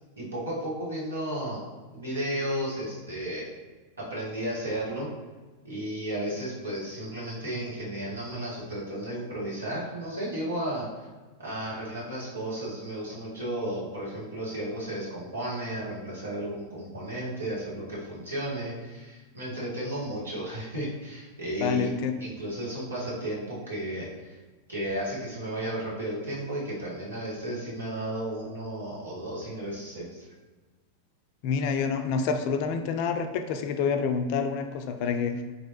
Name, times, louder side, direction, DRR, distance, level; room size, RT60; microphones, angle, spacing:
voice 1, 0.2-1.6 1.9-3.4 4.0-5.1 5.6-11.1 11.4-21.9 22.2-24.4 24.7-30.2, right 1 dB, 75° right, -7 dB, 1.4 m, -33 dB
voice 2, 21.6-22.2 31.4-35.4, left 5 dB, 45° left, 7 dB, 0.3 m, -27 dB
4.0 x 3.0 x 3.0 m, 1.3 s
figure-of-eight pair, 90°, 0 cm